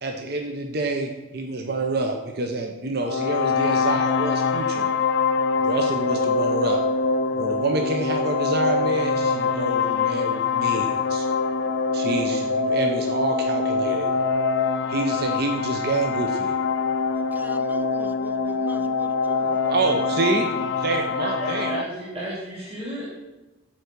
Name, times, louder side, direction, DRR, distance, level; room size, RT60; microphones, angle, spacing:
voice 1, 0.0-4.9 5.6-6.8 7.3-11.3 11.9-14.1 14.9-16.5 19.7-20.5 20.8-21.8, right 3 dB, 50° right, 3 dB, 0.7 m, -27 dB
sound 1, 3.0-21.8, left 4 dB, 60° left, 0.5 m, -24 dB
voice 2, 17.1-20.1, right 1 dB, 10° right, 10 dB, 0.3 m, -44 dB
voice 3, 21.2-23.1, right 1 dB, 30° right, -7 dB, 2.4 m, -32 dB
7.2 x 4.6 x 6.6 m, 1.1 s
head